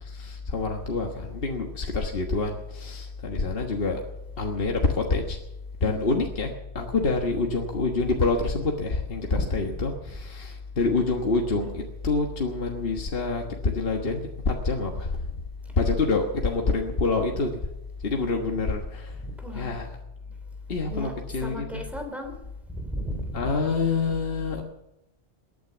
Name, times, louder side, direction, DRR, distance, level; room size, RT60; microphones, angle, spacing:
voice 1, 0.0-4.0 4.4-5.4 5.8-15.4 15.8-17.5 18.0-19.2 19.5-19.9 20.7-21.8 23.3-24.6, left 3 dB, 65° left, 2 dB, 1.6 m, -27 dB
voice 2, 9.3-9.7 19.2-19.7 20.9-22.3 22.7-23.5, equal, ahead, 3 dB, 3.2 m, -35 dB
21.0 x 9.5 x 6.9 m, 0.89 s
omnidirectional pair, 1.1 m